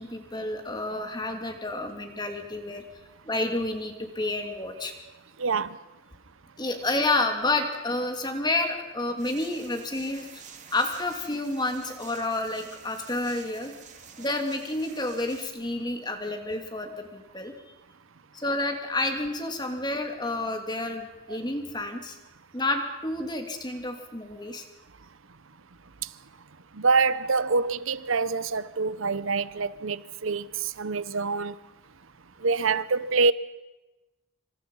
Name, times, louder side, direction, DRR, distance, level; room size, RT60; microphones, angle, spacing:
voice 1, 0.0-2.8 3.2-4.9 6.6-10.4 10.7-13.7 14.2-17.5 18.3-22.2 22.5-24.6, left 2 dB, 20° left, 2.8 m, -30 dB
voice 2, 5.4-5.8 21.3-21.4 26.7-31.5 32.4-33.3, right 4 dB, 75° right, 0.8 m, -26 dB
sound 1, 9.2-15.5, right 6 dB, 35° right, 2.8 m, -49 dB
27.0 x 26.0 x 5.6 m
head